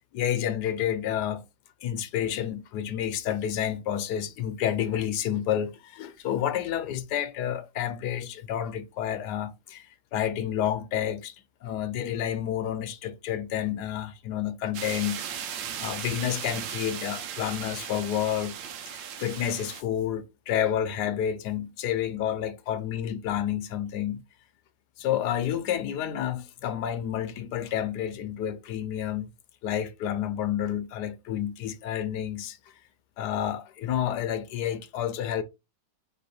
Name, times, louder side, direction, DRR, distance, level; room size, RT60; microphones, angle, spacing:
voice 1, 0.0-1.4 1.8-11.3 11.6-15.2 15.8-18.6 18.9-24.2 25.0-29.3 29.6-32.6 33.2-35.4, left 10 dB, 75° left, 1.1 m, -30 dB
sound 1, 14.7-19.8, right 9 dB, 90° right, 1.3 m, -37 dB
3.8 x 3.1 x 4.2 m
omnidirectional pair, 1.9 m